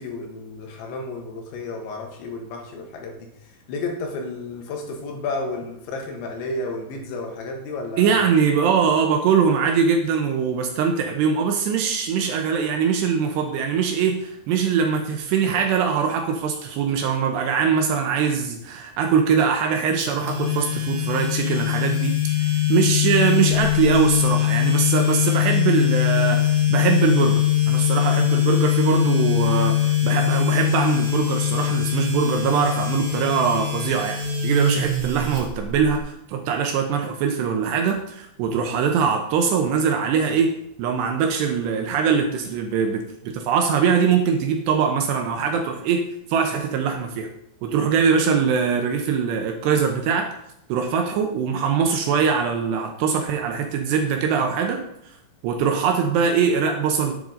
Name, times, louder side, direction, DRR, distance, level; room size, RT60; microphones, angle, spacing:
voice 1, 0.0-3.3 3.7-8.2, left 2 dB, 75° left, 2 dB, 3.7 m, -32 dB
voice 2, 8.0-34.2 34.4-40.5 40.8-46.0 46.3-47.3 47.6-50.3 50.7-54.8 55.4-57.2, right 6 dB, 75° right, 3 dB, 2.8 m, -22 dB
sound 1, 20.0-36.0, left 11 dB, 35° right, 1.5 m, -22 dB
10.5 x 8.8 x 3.9 m, 0.77 s
omnidirectional pair, 5.6 m